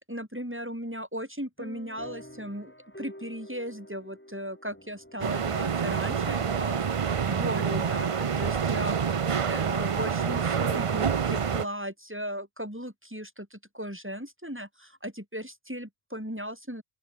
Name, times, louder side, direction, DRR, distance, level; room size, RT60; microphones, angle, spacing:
voice 1, 0.1-6.8 7.3-16.8, equal, 10° right, 5.7 m, -37 dB
sound 1, 1.6-9.7, equal, 10° left, 6.7 m, -50 dB
sound 2, 5.2-11.6, right 6 dB, 40° right, 0.6 m, -27 dB
open air
omnidirectional pair, 1.0 m